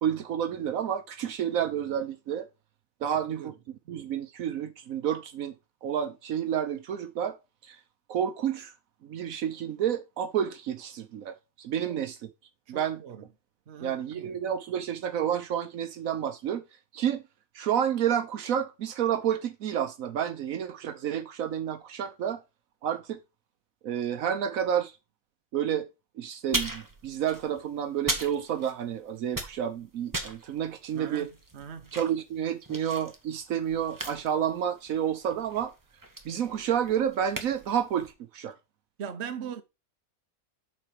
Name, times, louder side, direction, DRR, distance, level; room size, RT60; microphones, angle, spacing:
voice 1, 0.0-2.5 3.0-3.5 3.9-5.5 5.8-7.4 7.6-7.8 8.1-8.7 9.0-12.3 12.7-13.0 13.8-16.6 16.9-17.2 17.5-22.4 22.8-23.2 23.8-24.9 25.5-25.9 26.2-31.3 31.9-35.7 36.2-38.5, right 9 dB, 75° right, 1.2 m, -30 dB
voice 2, 3.1-3.5 11.9-12.0 12.7-13.2 13.7-14.4 30.9-31.9 39.0-39.6, right 7 dB, 55° right, 1.1 m, -40 dB
sound 1, 26.5-29.0 29.2-38.1, right 2 dB, 15° right, 1.1 m, -38 dB
7.4 x 4.5 x 5.1 m
omnidirectional pair, 1.5 m